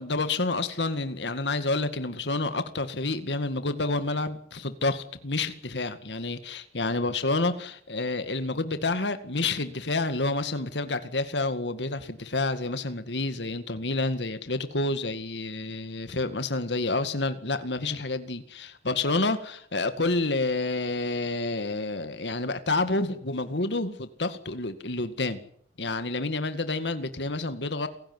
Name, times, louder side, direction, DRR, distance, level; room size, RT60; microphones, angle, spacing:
voice 1, 0.0-25.4 25.8-27.9, left 2 dB, 85° left, 10 dB, 2.1 m, -29 dB
29.0 x 16.5 x 9.7 m, 0.63 s
head